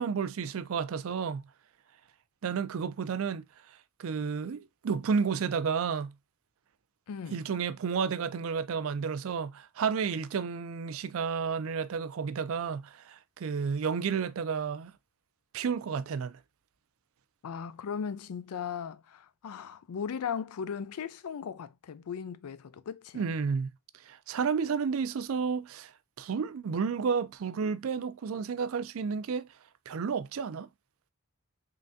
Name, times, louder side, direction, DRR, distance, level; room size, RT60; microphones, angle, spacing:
voice 1, 0.0-1.5 2.4-3.4 4.0-6.1 7.3-14.9 15.5-16.4 23.1-23.7 24.0-25.9 26.2-29.5 29.9-30.7, right 6 dB, 70° right, 0.4 m, -31 dB
voice 2, 7.1-7.4 17.4-23.2, left 7 dB, 90° left, 0.4 m, -37 dB
3.7 x 3.3 x 2.6 m
head